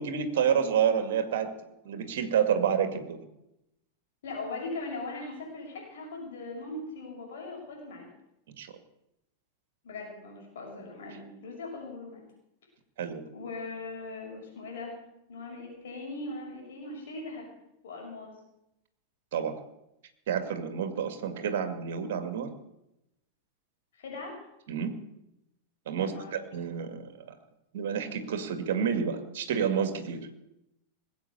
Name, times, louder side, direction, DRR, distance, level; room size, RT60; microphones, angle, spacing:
voice 1, 0.0-1.5 1.8-3.2 8.6-8.7 13.0-13.2 19.3-19.5 20.3-22.5 24.7-24.9 25.9-27.3 27.7-30.2, right 7 dB, 55° right, 9 dB, 2.1 m, -29 dB
voice 2, 4.2-8.1 9.8-12.2 13.3-14.9 15.3-17.5 17.8-18.4 23.9-24.4 26.0-26.3, left 3 dB, 60° left, -1 dB, 6.2 m, -40 dB
19.5 x 8.3 x 8.2 m, 0.85 s
figure-of-eight pair, 90°, 0 cm